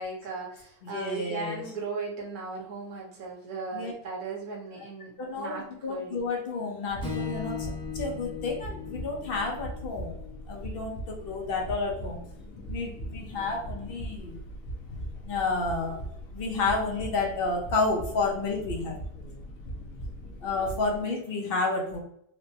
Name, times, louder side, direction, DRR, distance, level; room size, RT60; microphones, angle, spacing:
voice 1, 0.0-6.2, right 3 dB, 65° right, -3 dB, 1.6 m, -37 dB
voice 2, 0.8-1.6 3.7-3.9 5.2-10.2 10.5-12.2 12.7-14.4 15.2-16.0 16.3-18.9 20.4-22.0, left 3 dB, 45° left, 0 dB, 0.8 m, -30 dB
sound 1, 6.9-21.0, equal, 65° left, 1.4 m, -40 dB
Strum, 7.0-11.3, left 6 dB, 5° left, 0.8 m, -39 dB
4.3 x 2.1 x 2.8 m, 0.71 s
omnidirectional pair, 1.7 m